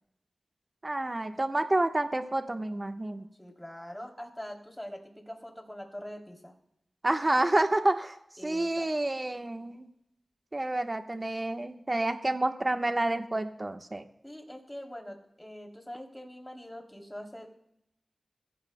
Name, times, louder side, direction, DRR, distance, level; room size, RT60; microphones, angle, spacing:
voice 1, 0.8-3.3 7.0-8.2 8.4-9.9 10.5-14.0, right 2 dB, 35° right, 6 dB, 1.1 m, -29 dB
voice 2, 3.4-6.5 8.4-8.9 14.2-17.5, equal, 10° left, 1 dB, 3.0 m, -43 dB
25.5 x 15.5 x 2.2 m, 0.80 s
cardioid pair, 50°, 0 cm